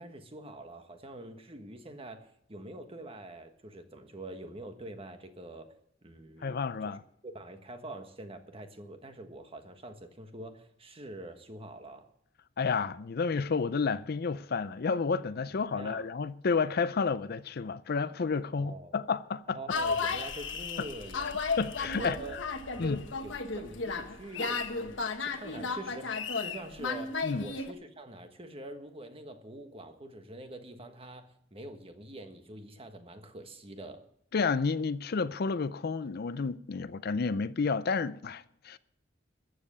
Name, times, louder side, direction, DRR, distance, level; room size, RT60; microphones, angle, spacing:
voice 1, 0.0-5.7 6.0-12.0 15.5-16.1 18.5-19.0 19.5-21.4 21.9-22.4 22.7-34.0, right 1 dB, 30° right, 1.4 m, -45 dB
voice 2, 6.4-7.0 12.6-19.6 21.6-22.2 22.8-23.0 27.2-27.5 34.3-38.8, left 5 dB, 55° left, 0.5 m, -31 dB
sound 1, 19.7-27.7, left 4 dB, 80° left, 1.4 m, -34 dB
14.0 x 7.7 x 8.4 m
head